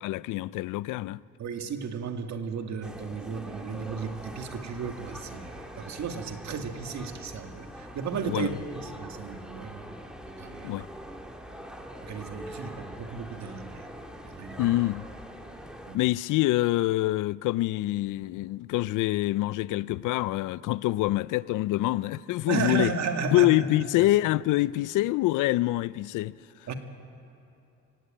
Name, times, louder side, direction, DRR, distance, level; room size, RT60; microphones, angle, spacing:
voice 1, 0.0-1.2 8.3-8.6 10.6-10.9 14.6-15.0 15.9-22.9 23.3-26.4, left 17 dB, 90° left, 0.5 m, -25 dB
voice 2, 1.4-10.8 12.0-13.9 14.2-14.7 15.9-16.0 22.5-23.7 26.7-26.8, right 5 dB, 65° right, 2.1 m, -34 dB
sound 1, 2.8-16.0, equal, 5° right, 2.3 m, -43 dB
25.5 x 16.5 x 8.9 m
cardioid pair, 90°, 30 cm